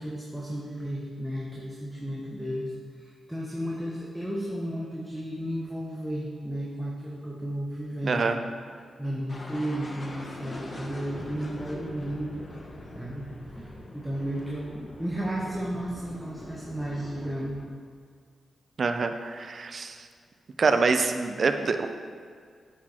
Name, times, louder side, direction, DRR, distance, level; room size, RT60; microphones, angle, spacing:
voice 1, 0.0-8.3 8.7-12.5 12.9-17.6, equal, ahead, -5 dB, 1.3 m, -34 dB
voice 2, 8.0-8.4 18.8-19.9 20.6-21.9, right 4 dB, 50° right, 8 dB, 0.7 m, -25 dB
sound 1, 9.3-17.7, left 1 dB, 30° left, 1.2 m, -42 dB
9.5 x 6.3 x 4.4 m, 2.1 s
cardioid pair, 90°, 0 cm